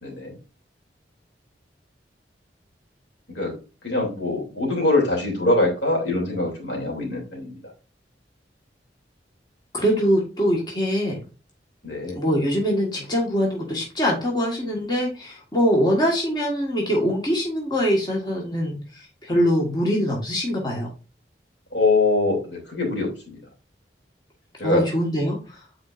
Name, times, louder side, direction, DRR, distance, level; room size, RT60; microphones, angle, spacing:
voice 1, 0.0-0.4 3.3-3.5 3.8-7.6 11.8-12.2 21.7-23.4 24.6-24.9, left 2 dB, 75° left, -1 dB, 2.8 m, -23 dB
voice 2, 9.7-11.2 12.1-20.9 24.6-25.6, equal, 25° left, -2 dB, 1.5 m, -23 dB
8.4 x 4.5 x 2.5 m, 0.34 s
head